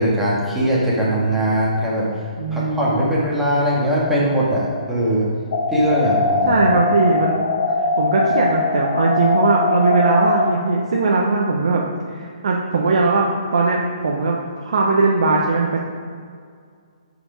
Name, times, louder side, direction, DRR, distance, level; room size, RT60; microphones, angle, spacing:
voice 1, 0.0-2.1 2.5-5.3 5.7-6.7, equal, 5° right, -7 dB, 2.1 m, -20 dB
voice 2, 2.4-3.1 6.4-7.4 8.0-15.8, right 3 dB, 60° right, -1 dB, 0.9 m, -19 dB
sound 1, 5.5-10.5, left 3 dB, 50° left, 1.1 m, -20 dB
9.7 x 5.1 x 5.2 m, 2.1 s
figure-of-eight pair, 130°, 4 cm